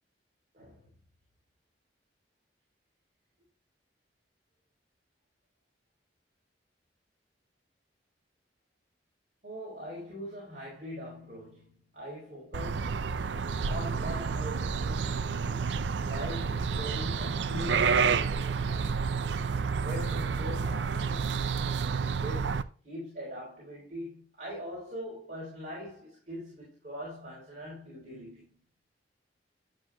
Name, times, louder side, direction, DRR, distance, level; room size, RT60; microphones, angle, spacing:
voice 1, 0.5-1.0 9.4-13.3 13.7-19.1 19.8-21.3 22.1-28.6, equal, 45° right, 3.6 m, -42 dB
sound 1, 12.5-22.6, right 5 dB, 85° right, 0.5 m, -30 dB
10.5 x 7.5 x 2.3 m
head